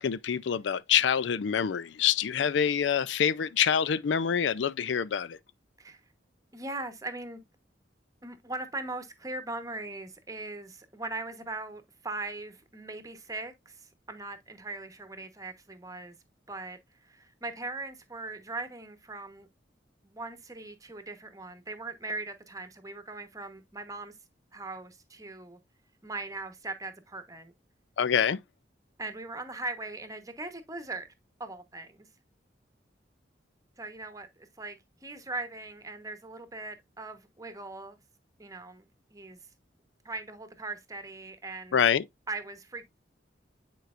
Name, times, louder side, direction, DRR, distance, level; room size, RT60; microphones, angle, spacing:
voice 1, 0.0-5.4 28.0-28.4 41.7-42.0, left 8 dB, 85° left, 0.4 m, -26 dB
voice 2, 6.5-7.4 8.2-16.1 16.5-19.5 20.0-24.2 24.5-25.6 26.0-27.5 29.0-31.1 31.4-32.1 33.8-38.0 38.4-39.4 40.0-41.8 42.3-42.8, right 2 dB, 20° right, 1.1 m, -40 dB
9.3 x 4.6 x 2.4 m
head